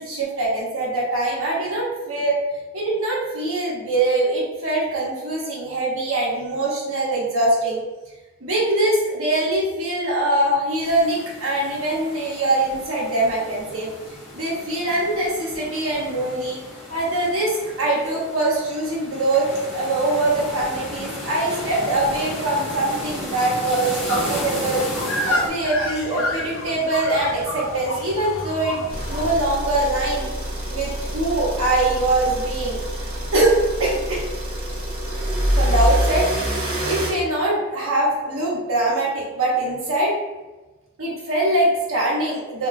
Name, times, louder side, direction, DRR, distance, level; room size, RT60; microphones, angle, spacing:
voice 1, 0.0-2.4 2.7-7.8 8.4-13.9 14.3-16.6 16.9-19.5 19.7-24.8 25.3-28.8 29.1-30.3 30.7-32.8 33.3-33.5 33.8-34.2 35.5-36.3 36.8-40.2 41.0-42.7, right 2 dB, 80° right, -5 dB, 0.9 m, -23 dB
sound 1, 10.8-25.5, left 1 dB, 10° left, 0.7 m, -34 dB
sound 2, 24.1-29.3, left 1 dB, 70° left, 0.4 m, -29 dB
sound 3, 28.9-37.1, equal, 25° right, 0.6 m, -26 dB
2.9 x 2.2 x 2.5 m, 1.2 s
head